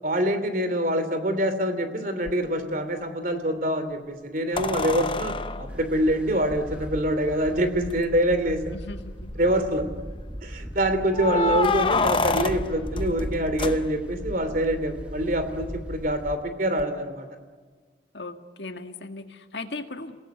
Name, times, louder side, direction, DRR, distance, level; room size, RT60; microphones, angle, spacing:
voice 1, 0.0-8.6 9.3-9.8 10.4-17.3, right 1 dB, 50° right, 9 dB, 2.9 m, -25 dB
sound 1, 2.3-2.4 4.6-6.9 7.9-8.0 8.3-8.4 8.9-9.4 11.1-14.3 16.8-16.9, left 3 dB, 30° left, 0.7 m, -28 dB
sound 2, 5.7-16.4, equal, 5° right, 1.5 m, -39 dB
voice 2, 8.7-9.3 11.2-11.6 12.0-12.3 18.1-20.2, left 3 dB, 70° left, 6 dB, 1.9 m, -38 dB
28.0 x 18.0 x 9.4 m, 1.5 s
head